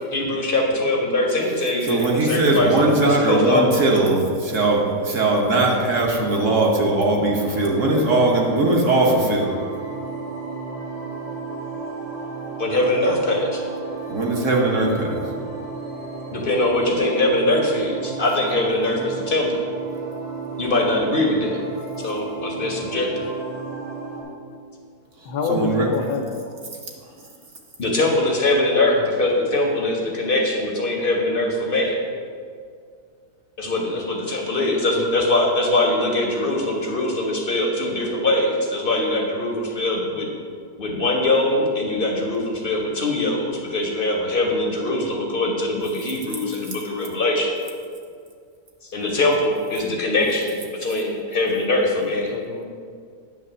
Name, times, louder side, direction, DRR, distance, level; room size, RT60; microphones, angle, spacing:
voice 1, 0.0-3.7 12.6-13.6 16.3-19.6 20.6-21.6 22.0-23.1 27.8-32.0 33.6-40.3 40.8-47.5 48.9-52.3, left 2 dB, 45° left, 0 dB, 0.7 m, -22 dB
voice 2, 1.9-9.5 14.1-15.2 25.5-25.9, right 2 dB, 50° right, -1 dB, 1.2 m, -19 dB
sound 1, 7.4-24.2, right 4 dB, 85° right, 2.6 m, -33 dB
voice 3, 25.2-26.4 33.9-34.0 52.3-52.6, left 5 dB, 70° left, 1 dB, 1.1 m, -26 dB
9.2 x 3.1 x 6.6 m, 2.2 s
omnidirectional pair, 1.8 m